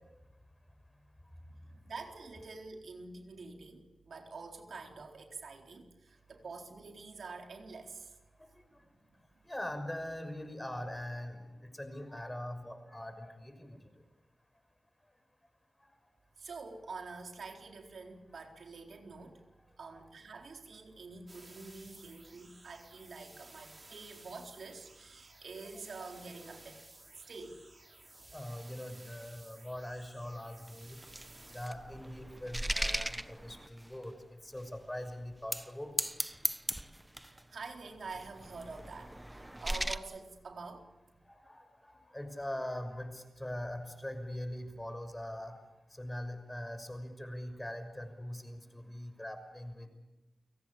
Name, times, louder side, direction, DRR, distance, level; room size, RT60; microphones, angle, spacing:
voice 1, 1.6-8.1 16.4-19.4 19.8-26.8 27.2-27.7 37.3-40.9, right 4 dB, 75° right, 3 dB, 4.0 m, -47 dB
voice 2, 9.5-11.4 11.7-13.8 25.7-25.8 28.3-31.0 31.5-34.1 34.4-35.9 41.3-45.5 46.0-49.9, left 1 dB, 15° left, 8 dB, 6.2 m, -42 dB
sound 1, 21.3-31.7, right 2 dB, 40° right, 5.6 m, -56 dB
sound 2, 30.7-34.0 34.6-34.7 35.4-35.7 36.0-37.4 38.1-39.9, right 1 dB, 10° right, 1.2 m, -37 dB
30.0 x 18.0 x 8.6 m, 1.0 s
cardioid pair, 50°, 0 cm